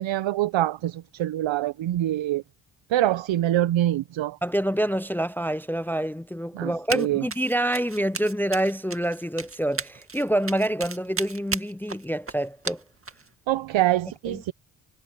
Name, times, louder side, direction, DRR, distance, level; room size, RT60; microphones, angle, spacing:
voice 1, 0.0-2.4 2.9-4.4 6.6-7.2 13.5-14.5, right 14 dB, 65° right, 1.2 m, -25 dB
voice 2, 4.4-12.8 14.3-14.4, right 1 dB, 5° left, 0.5 m, -27 dB
Run, 6.9-7.1 7.3-13.3, right 4 dB, 25° right, 2.1 m, -34 dB
hypercardioid pair, 50°, 49 cm